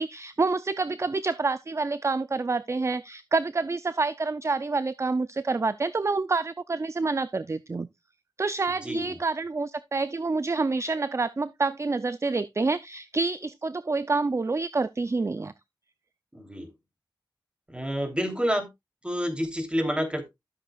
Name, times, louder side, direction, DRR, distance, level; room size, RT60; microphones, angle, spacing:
voice 1, 0.0-7.9 8.4-15.5, right 3 dB, 35° right, 0.4 m, -27 dB
voice 2, 8.7-9.2 16.3-16.7 17.7-18.7 19.0-20.3, equal, 10° right, 3.1 m, -29 dB
12.5 x 7.7 x 2.3 m
cardioid pair, 50°, 8 cm